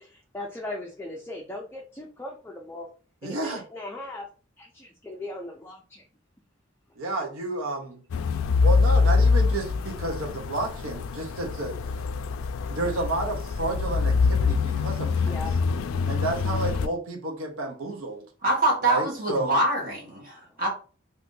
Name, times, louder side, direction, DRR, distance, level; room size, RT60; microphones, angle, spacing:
voice 1, 0.0-2.9 3.2-4.3 4.6-6.0 15.2-15.5 20.3-20.4, left 2 dB, 10° left, 0.4 m, -38 dB
voice 2, 3.2-3.6 7.0-8.0 8.6-11.8 12.7-15.3 16.1-18.2 18.8-19.6, right 2 dB, 85° right, 0.7 m, -31 dB
sound 1, 8.1-16.9, left 4 dB, 90° left, 0.3 m, -24 dB
voice 3, 18.4-20.7, right 2 dB, 45° right, 1.0 m, -25 dB
2.5 x 2.5 x 3.7 m
head